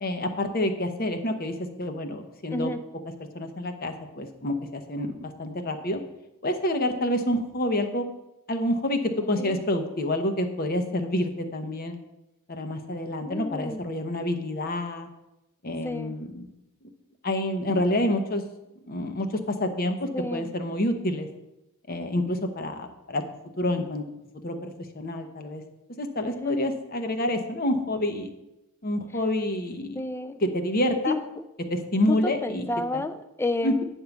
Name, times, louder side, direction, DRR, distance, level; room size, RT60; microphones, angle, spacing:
voice 1, 0.0-2.7 3.3-6.0 6.4-8.1 8.5-9.0 9.3-11.9 12.5-15.1 15.6-16.5 17.2-18.4 18.9-21.3 21.9-23.2 23.6-24.0 24.4-25.6 26.0-28.3 28.8-30.0 30.4-31.2 31.7-32.7 32.9-33.0 33.6-33.7, left 1 dB, 40° left, 7 dB, 0.8 m, -28 dB
voice 2, 13.3-13.8 15.8-16.1 20.1-20.5 26.3-26.7 30.0-30.4 31.1-31.2 32.1-33.8, left 2 dB, 10° left, 11 dB, 0.3 m, -30 dB
9.3 x 3.7 x 7.0 m, 0.92 s
head